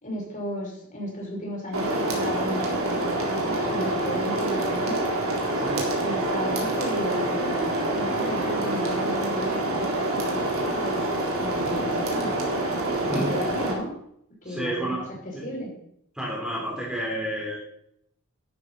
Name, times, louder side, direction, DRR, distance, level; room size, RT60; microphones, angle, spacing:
voice 1, 0.0-5.0 6.0-12.4 13.0-14.0 14.4-15.7, equal, 35° left, -2 dB, 5.8 m, -34 dB
sound 1, 1.7-13.7, right 1 dB, 70° right, 3.8 m, -26 dB
voice 2, 5.5-5.9 13.1-13.3 14.5-15.4 16.2-17.6, right 1 dB, 5° right, -4 dB, 3.6 m, -31 dB
12.5 x 11.5 x 4.1 m, 0.71 s
head